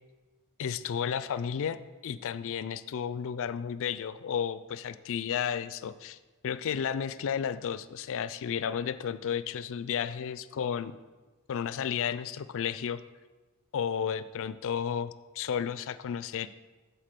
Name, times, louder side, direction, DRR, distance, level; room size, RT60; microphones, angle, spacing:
voice 1, 0.6-6.2 6.4-11.0 11.5-13.0 13.7-16.5, left 8 dB, 60° left, 15 dB, 0.4 m, -32 dB
7.5 x 4.3 x 6.7 m, 1.3 s
head